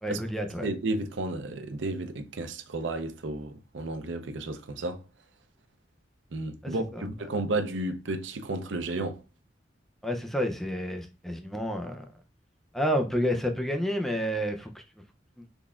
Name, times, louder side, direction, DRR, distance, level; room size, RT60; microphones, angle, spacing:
voice 1, 0.0-0.7 6.6-7.1 10.0-12.0 12.7-14.8 15.4-15.5, equal, ahead, 0.4 m, -30 dB
voice 2, 0.6-5.0 6.3-9.2, right 2 dB, 80° right, 0.6 m, -32 dB
4.0 x 3.3 x 2.3 m
head